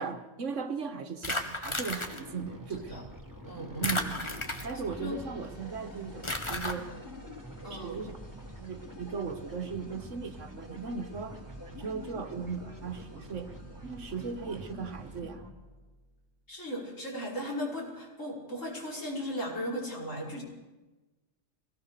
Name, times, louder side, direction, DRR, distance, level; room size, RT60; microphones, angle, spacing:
voice 1, 0.0-3.0 3.8-4.2 4.6-6.9 7.7-8.1 8.6-11.4 11.7-13.5 13.8-15.4, right 5 dB, 75° right, 8 dB, 1.7 m, -37 dB
sound 1, 1.2-2.2 3.8-4.9 6.2-6.7, left 1 dB, 25° left, 1.7 m, -33 dB
sound 2, 2.0-15.5, left 1 dB, 15° right, 2.9 m, -47 dB
sound 3, 3.2-16.3, right 2 dB, 60° left, 3.6 m, -51 dB
voice 2, 3.5-4.0 5.0-5.2 7.6-8.0 16.5-20.4, equal, 80° left, -3 dB, 5.7 m, -37 dB
22.5 x 18.0 x 6.7 m, 1.1 s
omnidirectional pair, 1.3 m